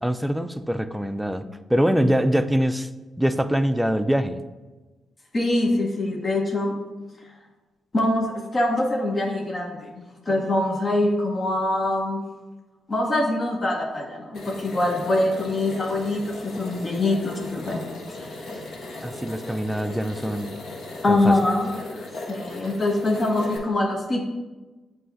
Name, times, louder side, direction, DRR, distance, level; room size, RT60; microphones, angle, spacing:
voice 1, 0.0-2.9 3.2-4.4 19.0-20.6 21.1-21.4, equal, 5° right, 11 dB, 0.4 m, -24 dB
voice 2, 5.3-6.8 7.9-12.2 12.9-17.8 18.1-19.0 19.9-20.0 21.0-24.3, left 1 dB, 40° left, 1 dB, 0.9 m, -24 dB
sound 1, 14.3-23.6, left 2 dB, 70° left, 1.2 m, -37 dB
7.7 x 2.8 x 4.4 m, 1.2 s
supercardioid pair, 55°, 0 cm